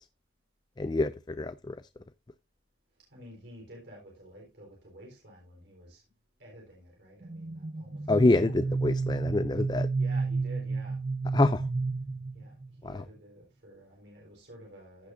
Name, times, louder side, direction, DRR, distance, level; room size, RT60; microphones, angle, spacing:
voice 1, 0.8-1.8 8.1-9.9 11.3-11.6 12.9-13.0, left 2 dB, 25° left, 0.4 m, -26 dB
voice 2, 3.1-6.0 6.4-8.9 10.0-11.0 11.3-11.5 12.3-12.6 12.8-15.1, equal, 85° right, 4.1 m, -51 dB
sound 1, 7.2-12.8, right 3 dB, 40° right, 0.5 m, -31 dB
15.5 x 6.2 x 2.5 m
head